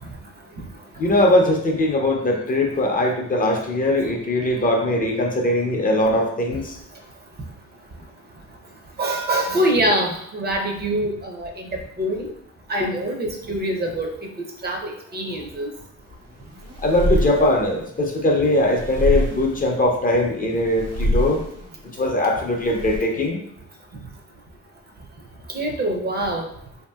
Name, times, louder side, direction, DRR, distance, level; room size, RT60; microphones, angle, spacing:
voice 1, 1.0-6.8 12.8-12.9 16.8-21.4 21.9-23.4, left 1 dB, 30° left, 1 dB, 0.5 m, -20 dB
voice 2, 9.0-12.3 12.7-14.3 14.6-15.7 25.5-26.5, right 1 dB, 35° right, 2 dB, 0.6 m, -24 dB
sound 1, 16.0-23.0, equal, 60° right, 0.9 m, -27 dB
2.7 x 2.6 x 2.3 m, 0.69 s
cardioid pair, 90°, 30 cm